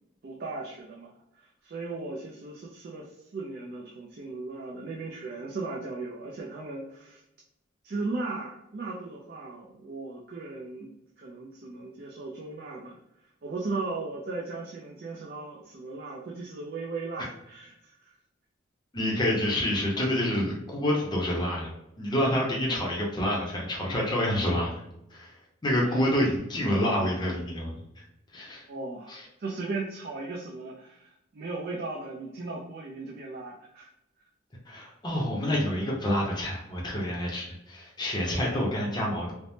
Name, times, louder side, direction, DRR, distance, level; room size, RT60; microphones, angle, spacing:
voice 1, 0.2-1.1 1.4-7.2 7.8-10.9 11.2-13.0 13.4-18.1 25.8-26.0 28.7-33.9 38.2-38.5, right 3 dB, 50° right, -2 dB, 0.4 m, -37 dB
voice 2, 18.9-21.7 22.0-24.7 25.1-25.3 25.6-27.7 28.3-28.7 29.1-29.3 34.7-39.3, left 1 dB, 20° left, -3 dB, 0.6 m, -27 dB
3.3 x 2.0 x 2.7 m, 0.86 s
head